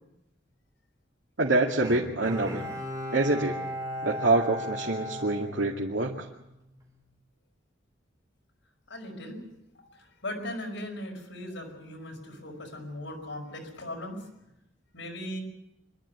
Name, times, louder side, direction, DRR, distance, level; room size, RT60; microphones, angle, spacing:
voice 1, 1.4-2.7 3.1-3.6 4.0-6.3, right 2 dB, 85° right, -2 dB, 2.3 m, -26 dB
Bowed string instrument, 1.8-6.3 6.8-6.9, left 1 dB, 20° right, 3.7 m, -36 dB
voice 2, 8.9-9.4 9.7-14.3 14.9-15.4, left 1 dB, 75° left, 0 dB, 5.5 m, -38 dB
26.5 x 12.0 x 9.5 m, 0.87 s
head